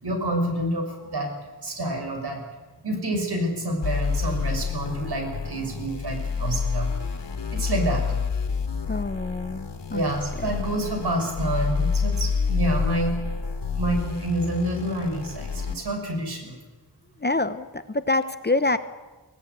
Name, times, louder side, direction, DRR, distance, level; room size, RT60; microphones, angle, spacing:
voice 1, 0.0-1.3 1.6-2.4 2.8-6.9 7.5-8.0 9.9-13.2 13.7-16.5, right 1 dB, 65° right, 4 dB, 6.2 m, -28 dB
sound 1, 3.8-15.7, left 5 dB, 80° left, 2.8 m, -28 dB
voice 2, 8.9-10.1 10.4-10.5 17.2-18.8, left 2 dB, 25° left, 11 dB, 0.9 m, -26 dB
24.0 x 18.0 x 9.4 m, 1.2 s
wide cardioid pair, 145°, 42 cm